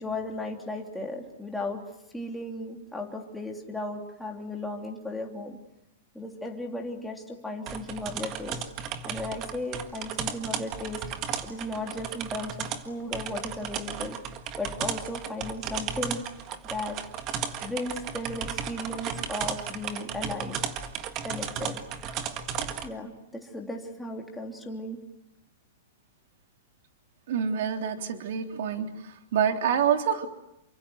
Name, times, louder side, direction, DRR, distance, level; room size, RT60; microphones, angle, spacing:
voice 1, 0.0-1.9 2.1-5.6 6.1-8.6 9.0-11.0 11.4-14.2 14.6-16.3 16.7-17.0 17.6-20.6 21.2-21.8 22.8-25.0, left 1 dB, ahead, 0 dB, 3.1 m, -35 dB
sound 1, 7.7-22.9, right 8 dB, 25° right, 1.6 m, -35 dB
voice 2, 27.3-28.9 29.3-30.3, right 8 dB, 50° right, 5 dB, 3.4 m, -26 dB
29.0 x 25.5 x 8.0 m, 0.83 s
supercardioid pair, 175°, 0 cm